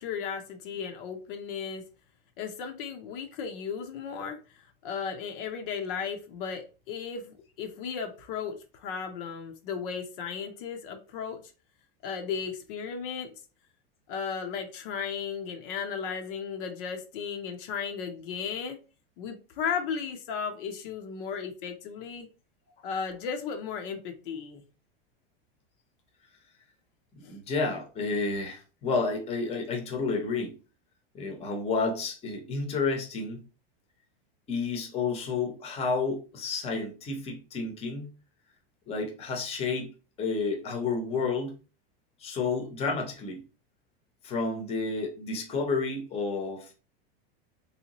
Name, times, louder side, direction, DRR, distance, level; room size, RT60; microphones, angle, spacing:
voice 1, 0.0-1.8 2.4-11.4 12.0-13.4 14.1-18.8 19.2-22.3 22.8-24.6 27.2-27.4, left 6 dB, 60° left, 0.7 m, -35 dB
voice 2, 27.3-30.5 31.1-33.4 34.5-38.1 38.9-39.9 40.2-41.6 42.2-43.4 44.2-46.7, left 4 dB, 20° left, 0.8 m, -30 dB
3.4 x 2.8 x 2.9 m
supercardioid pair, 145°, 30 cm